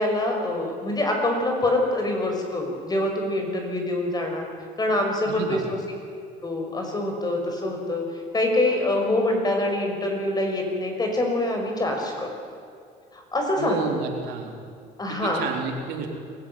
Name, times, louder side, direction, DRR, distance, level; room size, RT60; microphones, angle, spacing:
voice 1, 0.0-4.5 4.8-5.8 6.4-8.0 8.3-12.3 13.1-13.8 15.0-15.4, left 1 dB, 25° left, 2 dB, 5.9 m, -25 dB
voice 2, 5.2-5.6 13.6-14.5 15.2-16.1, right 5 dB, 90° right, 2 dB, 3.6 m, -30 dB
23.5 x 16.0 x 9.5 m, 2.4 s
cardioid pair, 110°, 17 cm